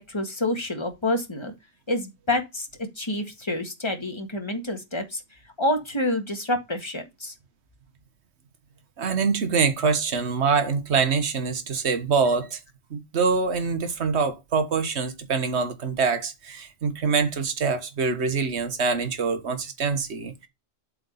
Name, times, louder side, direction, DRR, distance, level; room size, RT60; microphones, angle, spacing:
voice 1, 0.0-1.5 1.9-2.7 3.0-5.2 5.6-7.3, left 1 dB, 20° left, 1.7 m, -28 dB
voice 2, 9.0-12.6 12.9-20.5, right 5 dB, 60° right, 1.6 m, -25 dB
7.7 x 4.4 x 5.5 m
omnidirectional pair, 1.3 m